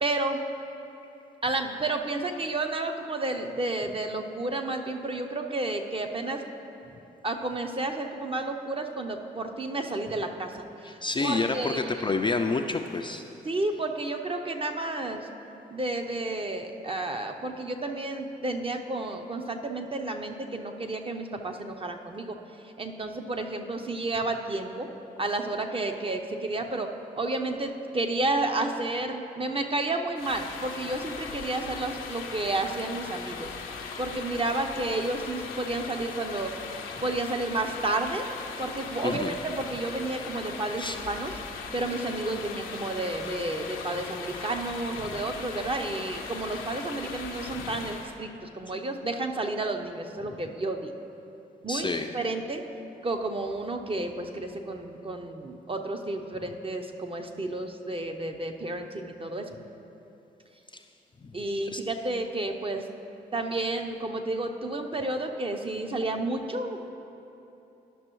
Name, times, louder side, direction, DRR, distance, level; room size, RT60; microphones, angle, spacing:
voice 1, 0.0-0.4 1.4-6.4 7.2-10.6 11.2-12.0 13.4-15.3 15.7-22.4 22.8-24.9 25.2-26.9 27.2-33.5 33.8-36.5 37.0-38.3 38.6-41.3 41.7-50.9 51.6-51.9 52.1-52.6 53.0-59.5 61.3-62.8 63.3-66.9, right 2 dB, 25° right, 4 dB, 0.7 m, -31 dB
voice 2, 10.8-13.2 39.0-39.4 40.8-41.0 45.0-45.2 47.6-47.8 50.3-50.4 51.7-52.1 60.7-60.8 61.2-61.4 61.7-61.8, left 3 dB, 25° left, 5 dB, 0.4 m, -29 dB
sound 1, 30.2-48.2, left 5 dB, 75° left, 0.6 m, -39 dB
11.0 x 6.0 x 3.0 m, 2.9 s
hypercardioid pair, 40°, 21 cm